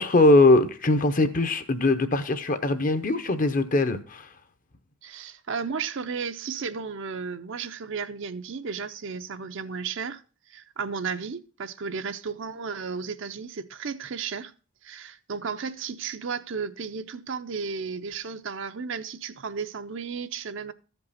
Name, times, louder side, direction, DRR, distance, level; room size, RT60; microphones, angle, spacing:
voice 1, 0.0-4.3, left 2 dB, 40° left, 0.7 m, -21 dB
voice 2, 5.0-10.2 10.5-14.5 14.8-20.7, right 5 dB, 55° right, 0.5 m, -34 dB
14.0 x 5.3 x 4.1 m
head